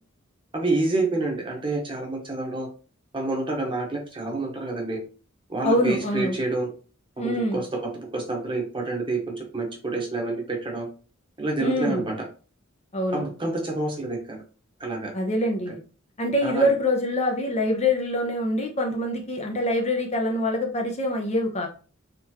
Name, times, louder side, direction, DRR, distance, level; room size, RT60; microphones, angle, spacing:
voice 1, 0.5-2.7 3.1-5.0 5.5-6.7 7.2-7.7 7.9-10.9 11.4-12.2 13.1-14.4 14.8-15.1 16.4-16.7, right 2 dB, 25° right, 0 dB, 1.1 m, -28 dB
voice 2, 5.6-6.4 7.2-7.6 11.6-12.0 12.9-13.2 15.1-15.8 16.2-21.7, left 1 dB, 35° left, 1 dB, 0.8 m, -25 dB
3.7 x 3.4 x 3.0 m, 0.36 s
head